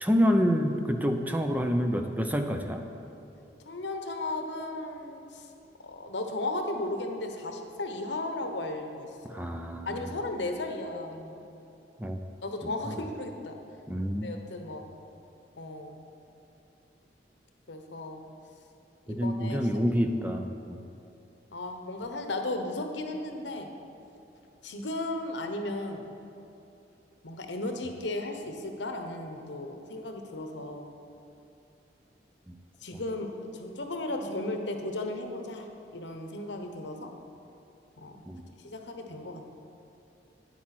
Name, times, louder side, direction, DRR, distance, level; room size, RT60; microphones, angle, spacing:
voice 1, 0.0-2.9 9.2-10.1 12.0-12.2 12.6-12.9 13.9-14.3 19.1-20.8 32.5-32.6 32.9-33.0 38.3-38.5, equal, 10° right, 5 dB, 0.5 m, -28 dB
voice 2, 3.6-5.5 5.8-9.4 9.9-11.4 12.4-13.6 14.2-14.8 15.6-16.1 17.7-18.2 19.1-19.6 21.5-23.7 24.6-26.1 27.2-30.9 32.8-37.1 38.0-38.2 38.6-39.6, left 2 dB, 80° left, 5 dB, 1.1 m, -35 dB
9.6 x 8.7 x 6.0 m, 2.8 s
head